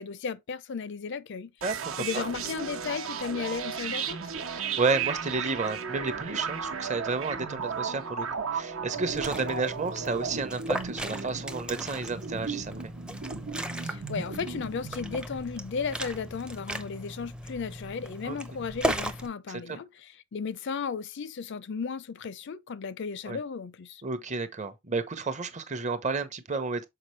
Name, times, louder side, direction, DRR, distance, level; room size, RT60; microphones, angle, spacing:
voice 1, 0.0-1.5 2.0-4.2 13.8-24.0, left 5 dB, 55° left, 0.4 m, -35 dB
voice 2, 1.6-2.3 4.5-12.9 18.2-18.4 19.5-19.6 23.3-23.4 24.0-26.8, right 4 dB, 35° right, 0.8 m, -31 dB
sound 1, 1.6-15.2, right 6 dB, 70° right, 1.0 m, -35 dB
Liquid, 8.9-19.3, right 1 dB, 5° right, 0.5 m, -37 dB
6.7 x 4.7 x 3.2 m
head